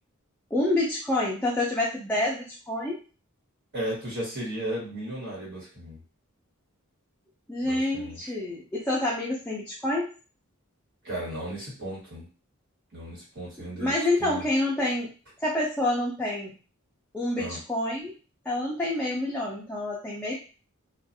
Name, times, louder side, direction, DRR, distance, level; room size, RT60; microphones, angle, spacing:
voice 1, 0.5-3.0 7.5-10.1 13.8-15.1 15.4-16.6 17.1-18.1 18.5-20.3, left 1 dB, 5° left, -5 dB, 0.4 m, -27 dB
voice 2, 3.7-6.0 7.6-8.3 11.0-12.3 12.9-14.5 17.4-17.6, right 1 dB, 50° right, -6 dB, 1.4 m, -35 dB
2.5 x 2.3 x 2.6 m, 0.36 s
head